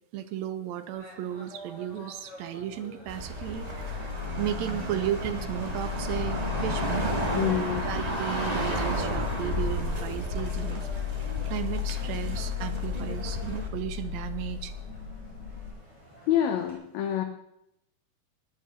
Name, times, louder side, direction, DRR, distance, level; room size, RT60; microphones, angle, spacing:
voice 1, 0.1-10.9 11.4-14.7, right 11 dB, 75° right, 11 dB, 1.9 m, -35 dB
sound 1, 0.9-16.8, equal, 20° left, 7.2 m, -49 dB
sound 2, 3.1-13.7, right 1 dB, 15° right, 1.7 m, -33 dB
sound 3, 3.5-15.7, left 11 dB, 90° left, 7.7 m, -35 dB
voice 2, 7.3-7.8 16.3-17.2, left 10 dB, 75° left, 6 dB, 2.1 m, -26 dB
19.0 x 11.0 x 3.7 m, 0.81 s
omnidirectional pair, 3.3 m